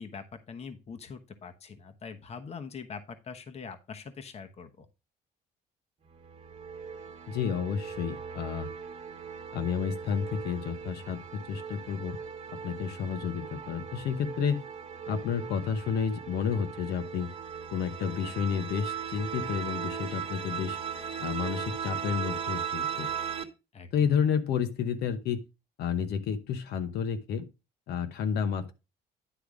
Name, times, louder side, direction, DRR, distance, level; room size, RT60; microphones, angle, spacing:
voice 1, 0.0-4.9 23.7-23.9, left 5 dB, 40° left, 1.0 m, -43 dB
sound 1, 6.1-23.4, right 7 dB, 35° right, 1.2 m, -38 dB
voice 2, 7.3-8.7 9.5-12.2 12.6-14.6 15.1-17.3 17.7-20.8 21.2-23.1 23.9-25.4 25.8-27.5 27.9-28.7, left 7 dB, 75° left, 1.0 m, -31 dB
10.0 x 3.4 x 5.0 m
cardioid pair, 110°, 17 cm